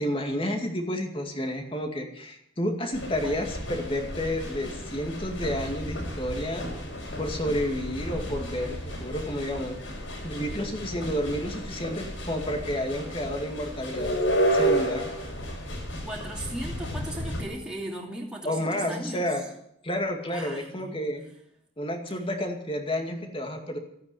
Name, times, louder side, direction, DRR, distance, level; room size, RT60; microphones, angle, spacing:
voice 1, 0.0-6.6 7.2-9.8 10.2-14.1 14.5-15.0 18.4-19.4 19.8-21.2 21.8-23.8, equal, 30° left, 4 dB, 2.3 m, -30 dB
sound 1, 2.9-17.4, right 1 dB, 80° left, 5.3 m, -32 dB
voice 2, 16.0-19.3 20.3-21.0, right 1 dB, 5° right, -3 dB, 2.8 m, -37 dB
14.0 x 9.5 x 9.9 m, 0.75 s
head